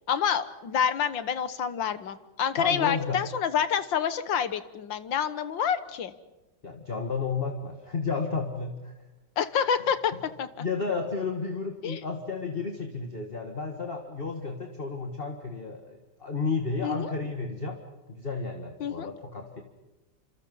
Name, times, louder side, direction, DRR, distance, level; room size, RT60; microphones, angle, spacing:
voice 1, 0.1-6.1 9.4-10.1 10.4-10.5 11.8-12.0 16.8-17.1 18.8-19.1, left 8 dB, 70° left, 12 dB, 1.9 m, -28 dB
voice 2, 2.6-3.2 6.6-8.9 10.6-17.8 18.1-19.6, left 4 dB, 30° left, 3 dB, 2.0 m, -32 dB
28.0 x 26.5 x 5.5 m, 1.1 s
omnidirectional pair, 2.2 m